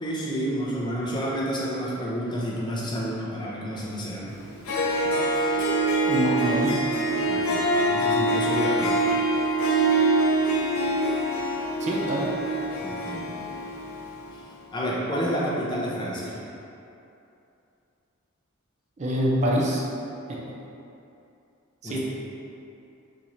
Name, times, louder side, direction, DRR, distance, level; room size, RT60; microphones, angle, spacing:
voice 1, 0.0-4.4 7.3-9.0 12.8-13.4 14.3-14.4 14.7-16.4 21.8-22.0, equal, 20° left, -5 dB, 0.5 m, -30 dB
Harp, 4.4-4.5 4.7-14.2, right 2 dB, 85° left, 0.5 m, -24 dB
voice 2, 6.1-6.8 11.8-12.3 19.0-19.8 20.3-20.6 21.8-22.0, equal, 35° right, -3 dB, 0.4 m, -25 dB
4.1 x 3.0 x 2.5 m, 2.7 s
head